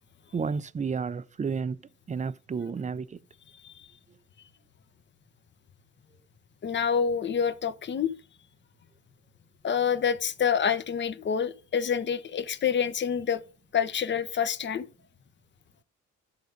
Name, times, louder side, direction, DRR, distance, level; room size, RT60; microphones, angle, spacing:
voice 1, 0.3-1.8 2.1-3.2, right 5 dB, 25° right, 0.5 m, -31 dB
voice 2, 6.6-8.1 9.6-13.4 13.7-14.9, left 7 dB, 40° left, 0.9 m, -27 dB
11.5 x 3.9 x 5.1 m
cardioid pair, 90°, 30 cm